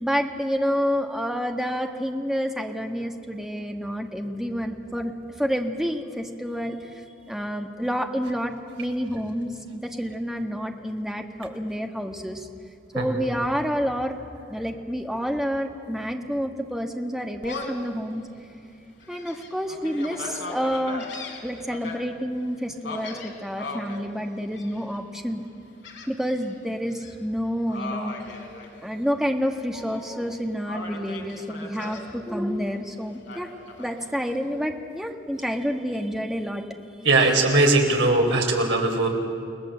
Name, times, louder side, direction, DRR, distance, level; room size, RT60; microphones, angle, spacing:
voice 1, 0.0-12.5 12.9-14.2 14.5-18.3 19.1-21.1 21.4-25.4 26.1-28.1 28.8-33.5 33.8-36.6, equal, ahead, 3 dB, 1.5 m, -29 dB
Gull seagull, 17.4-17.9 18.4-18.5 19.0-22.0 22.8-24.0 24.5-25.0 25.8-26.5 26.9-27.1 27.7-29.2 29.6-30.3 30.7-32.0 33.3-34.3, left 3 dB, 70° left, 3.8 m, -38 dB
voice 2, 37.0-39.1, right 2 dB, 65° right, 2 dB, 4.2 m, -20 dB
29.5 x 19.5 x 7.7 m, 2.5 s
head